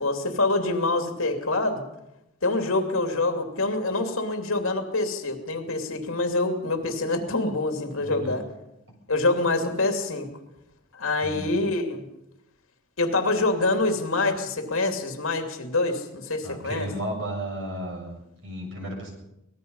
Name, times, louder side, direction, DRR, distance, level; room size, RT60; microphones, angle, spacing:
voice 1, 0.0-1.8 2.4-8.4 9.1-10.3 10.9-12.0 13.0-16.9, left 2 dB, 70° left, 5 dB, 2.9 m, -26 dB
voice 2, 8.0-8.4 8.9-9.0 11.2-11.5 16.4-19.1, right 1 dB, 60° right, 1 dB, 7.2 m, -34 dB
24.5 x 18.5 x 5.6 m, 0.86 s
head